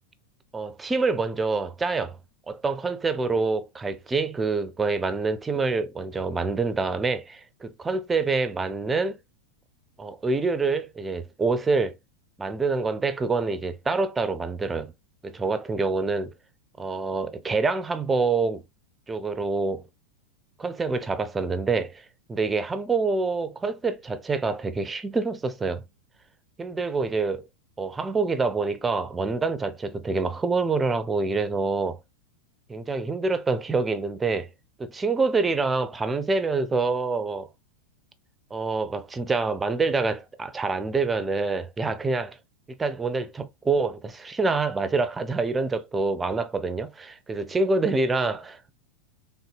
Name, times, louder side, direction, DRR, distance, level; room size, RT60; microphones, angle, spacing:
voice 1, 0.5-2.2 2.5-9.2 10.0-11.9 12.4-14.9 15.2-16.3 16.8-18.6 19.1-19.8 20.6-25.8 26.6-27.5 27.8-32.0 32.7-34.5 34.8-37.5 38.5-42.4 42.7-48.7, right 3 dB, 15° right, 0.5 m, -26 dB
3.5 x 2.7 x 2.4 m
figure-of-eight pair, 90°, 0 cm